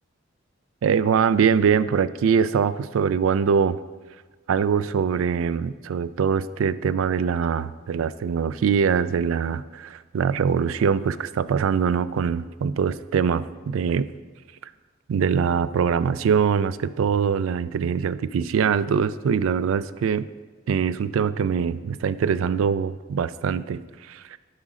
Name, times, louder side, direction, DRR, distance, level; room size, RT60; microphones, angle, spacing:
voice 1, 0.8-3.8 4.5-14.1 15.1-20.3 20.7-23.8 24.1-24.4, right 6 dB, 90° right, 15 dB, 0.3 m, -23 dB
11.5 x 5.1 x 3.7 m, 1.3 s
head